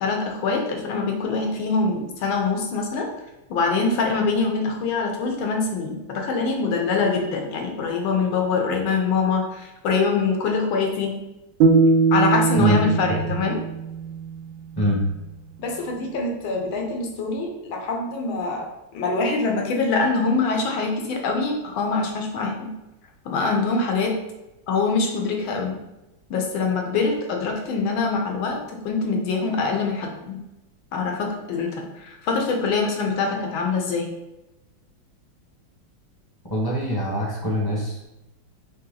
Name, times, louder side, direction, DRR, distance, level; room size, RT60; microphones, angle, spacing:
voice 1, 0.0-3.1 3.5-11.2 12.1-13.6 15.6-22.7 23.2-24.2 24.7-25.8 26.3-30.4 30.9-34.1, left 4 dB, 85° left, 1 dB, 1.6 m, -24 dB
sound 1, 11.6-14.7, right 4 dB, 75° right, 1.1 m, -21 dB
voice 2, 36.5-38.1, equal, 20° left, -4 dB, 0.6 m, -23 dB
4.9 x 2.8 x 3.8 m, 0.97 s
omnidirectional pair, 2.1 m